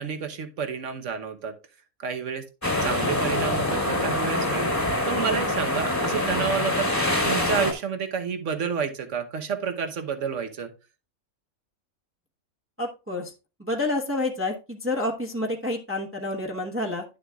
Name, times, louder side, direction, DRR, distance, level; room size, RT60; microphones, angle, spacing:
voice 1, 0.0-1.6 2.0-2.4 2.8-6.9 7.2-10.7, right 6 dB, 60° right, 7 dB, 1.3 m, -30 dB
sound 1, 2.6-7.7, left 1 dB, 10° left, 1.5 m, -25 dB
voice 2, 12.8-13.3 13.6-17.0, left 2 dB, 10° right, 0 dB, 1.0 m, -29 dB
11.0 x 7.2 x 2.3 m, 0.30 s
omnidirectional pair, 1.5 m